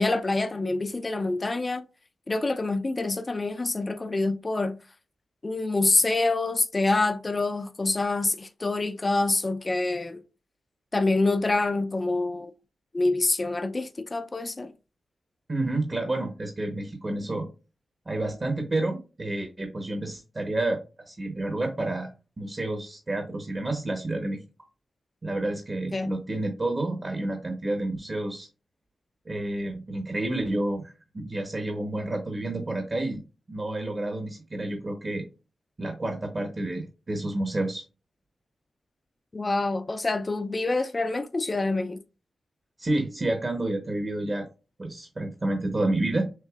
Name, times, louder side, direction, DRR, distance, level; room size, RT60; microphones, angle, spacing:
voice 1, 0.0-1.8 2.3-4.8 5.4-10.2 10.9-12.5 12.9-14.7 25.9-26.2 39.3-42.0, left 2 dB, 30° left, 0.5 m, -26 dB
voice 2, 15.5-17.5 18.1-20.8 21.1-22.1 22.4-24.4 25.2-28.5 29.2-33.2 33.5-35.3 35.8-37.8 42.8-44.5 44.8-46.3, right 2 dB, 35° right, 1.0 m, -29 dB
6.5 x 2.6 x 2.4 m
cardioid pair, 90°, 0 cm